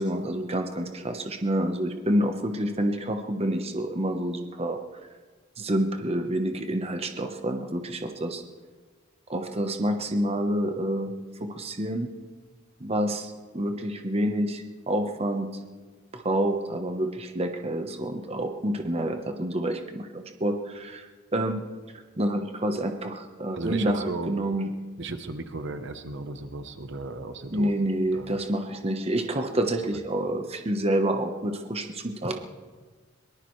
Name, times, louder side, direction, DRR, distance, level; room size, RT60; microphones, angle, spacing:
voice 1, 0.0-4.8 5.6-8.4 9.3-11.1 11.4-12.1 12.8-15.5 16.1-21.6 22.2-24.7 27.5-32.4, right 1 dB, 30° right, 5 dB, 1.0 m, -28 dB
voice 2, 23.5-24.3 25.0-27.7 28.1-28.4, right 2 dB, 60° right, 8 dB, 1.0 m, -35 dB
22.5 x 19.5 x 3.2 m, 1.4 s
head